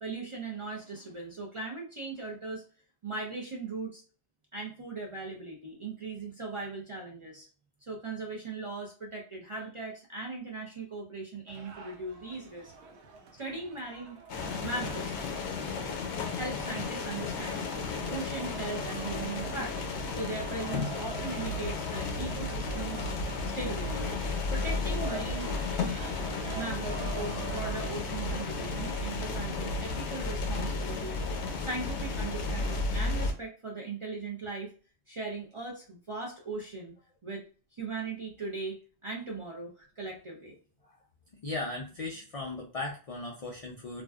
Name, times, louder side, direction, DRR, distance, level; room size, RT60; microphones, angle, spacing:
voice 1, 0.0-2.6 3.0-4.0 4.5-7.5 7.9-12.7 13.4-14.2 14.6-15.1 16.2-19.8 20.1-23.1 23.5-24.1 24.5-25.5 26.5-31.2 31.6-34.7 35.1-36.9 37.2-37.4 37.7-40.5, right 3 dB, 45° right, -2 dB, 0.4 m, -39 dB
sound 1, 11.5-27.8, right 3 dB, 80° right, 0.8 m, -46 dB
sound 2, 14.3-33.3, left 3 dB, 90° left, 0.9 m, -33 dB
voice 2, 41.4-44.0, left 2 dB, 60° left, -1 dB, 0.3 m, -37 dB
2.5 x 2.1 x 2.3 m, 0.39 s
omnidirectional pair, 1.1 m